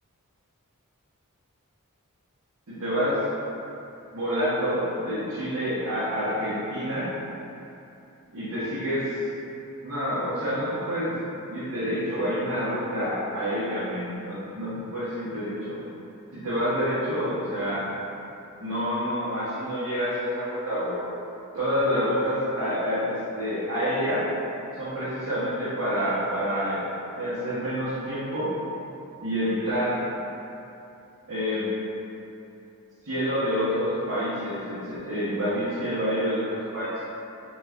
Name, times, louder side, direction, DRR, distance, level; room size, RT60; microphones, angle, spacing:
voice 1, 2.7-3.2 4.1-7.1 8.3-9.2 9.8-11.2 11.5-15.8 16.3-17.8 18.6-21.0 21.5-24.3 24.7-26.9 27.1-28.5 29.2-30.0 31.3-31.7 33.0-37.1, equal, 70° right, -13 dB, 0.8 m, -28 dB
3.0 x 2.2 x 3.4 m, 2.7 s
head